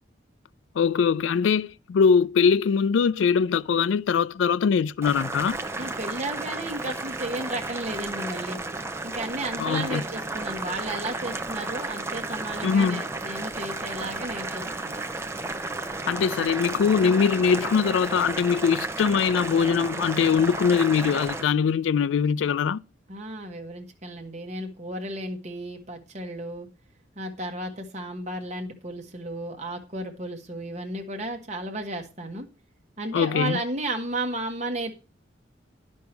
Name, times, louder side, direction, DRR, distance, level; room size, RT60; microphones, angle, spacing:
voice 1, 0.8-5.6 9.6-10.0 12.6-13.0 16.1-22.8 33.1-33.6, left 6 dB, 80° left, 0.3 m, -22 dB
Boiling, 5.0-21.4, right 2 dB, 15° right, 0.6 m, -33 dB
voice 2, 5.8-8.6 9.0-15.1 23.1-26.7 27.1-32.5 33.0-34.9, right 1 dB, 40° right, 1.3 m, -33 dB
10.5 x 5.5 x 4.5 m
head